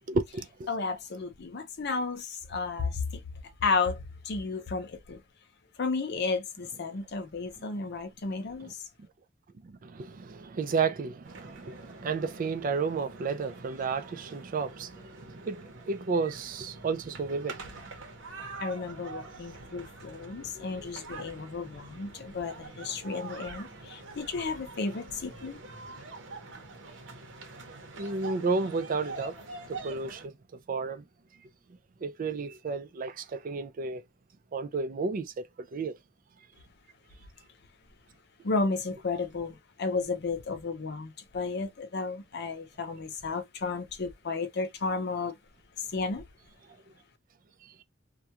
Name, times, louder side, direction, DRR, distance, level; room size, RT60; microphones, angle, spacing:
voice 1, 0.1-0.7 9.6-17.7 28.0-29.4 29.7-30.3 30.7-31.0 32.0-34.0 34.5-35.4 35.7-36.0, right 4 dB, 45° right, 0.4 m, -32 dB
voice 2, 0.7-3.2 3.6-5.2 5.8-8.9 18.6-25.6 38.4-45.4 45.8-46.2, left 4 dB, 60° left, 0.6 m, -33 dB
sound 1, 11.2-30.3, right 3 dB, 75° right, 0.9 m, -45 dB
2.3 x 2.2 x 2.8 m
head